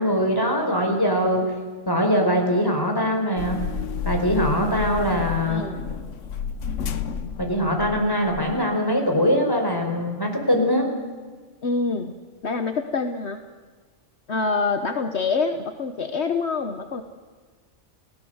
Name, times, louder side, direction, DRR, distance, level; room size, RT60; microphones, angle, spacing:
voice 1, 0.0-1.5 1.8-3.6 4.0-5.6 7.4-10.9, equal, 20° left, 3 dB, 4.8 m, -22 dB
sound 1, 3.4-8.6, left 6 dB, 90° left, 1.4 m, -31 dB
voice 2, 5.5-5.8 11.6-12.1 12.4-13.4 14.3-17.0, left 4 dB, 65° left, 7 dB, 1.4 m, -26 dB
29.5 x 18.0 x 8.0 m, 1.4 s
omnidirectional pair, 1.2 m